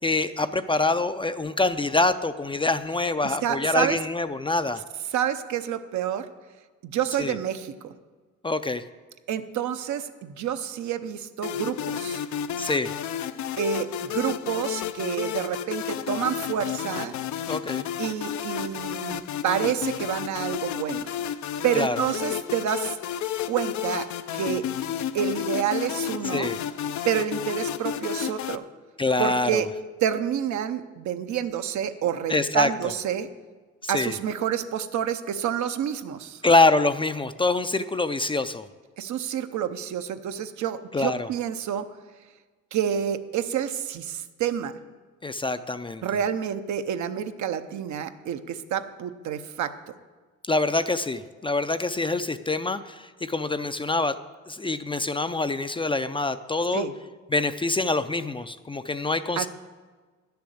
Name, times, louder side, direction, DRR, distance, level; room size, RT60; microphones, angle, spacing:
voice 1, 0.0-4.8 7.2-7.4 8.4-8.8 12.6-12.9 17.5-17.9 21.8-22.0 26.3-26.6 29.0-29.6 32.3-32.7 33.8-34.2 36.4-38.7 40.9-41.3 45.2-46.0 50.4-54.2 54.5-56.8 57.3-59.5, left 2 dB, 15° left, 11 dB, 0.4 m, -25 dB
voice 2, 3.2-4.0 5.1-6.3 6.8-7.7 9.3-12.2 13.6-13.9 14.1-17.1 18.0-21.1 21.6-23.0 23.5-24.1 24.3-24.6 25.1-26.5 27.0-28.6 29.2-29.7 30.0-33.3 33.9-36.4 39.0-41.9 42.7-44.7 46.0-49.7 56.7-56.9 59.4-59.5, right 9 dB, 70° right, 9 dB, 0.8 m, -28 dB
sound 1, 11.4-28.6, left 10 dB, 70° left, 0.5 m, -31 dB
10.5 x 6.9 x 7.8 m, 1.4 s
cardioid pair, 90°, 30 cm